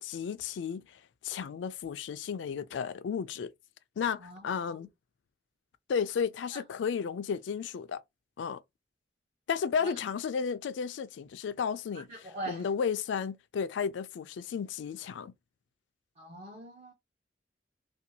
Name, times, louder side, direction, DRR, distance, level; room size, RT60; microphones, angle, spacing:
voice 1, 0.0-3.5 4.0-4.9 5.9-8.0 8.4-8.6 9.5-12.1 12.5-15.3, left 6 dB, 85° left, 0.3 m, -33 dB
voice 2, 4.2-4.9 6.5-6.6 9.8-9.9 11.9-12.7 16.2-16.9, right 2 dB, 40° right, 0.8 m, -43 dB
2.7 x 2.3 x 2.7 m
head